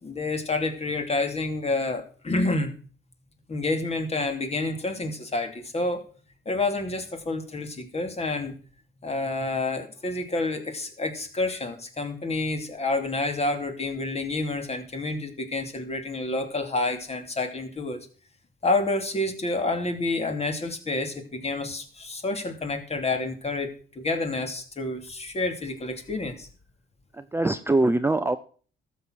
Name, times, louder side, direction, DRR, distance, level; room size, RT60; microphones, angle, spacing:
voice 1, 0.0-2.7 3.5-6.1 6.5-8.5 9.0-18.0 18.6-26.5, left 2 dB, 30° left, 6 dB, 2.7 m, -29 dB
voice 2, 27.1-28.4, right 2 dB, 10° right, 10 dB, 0.7 m, -23 dB
13.0 x 6.9 x 6.3 m, 0.42 s
cardioid pair, 90°, 20 cm